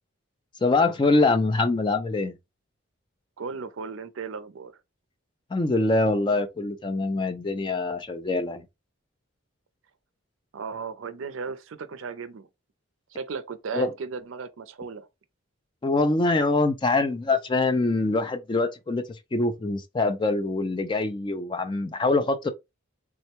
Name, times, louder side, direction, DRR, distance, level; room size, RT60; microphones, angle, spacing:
voice 1, 0.6-2.4 5.5-8.6 13.7-13.9 15.8-19.0 19.3-22.5, left 3 dB, 25° left, 0.3 m, -24 dB
voice 2, 3.4-4.7 10.5-12.5 13.1-15.1, right 5 dB, 70° right, 0.4 m, -35 dB
3.5 x 2.1 x 2.9 m
head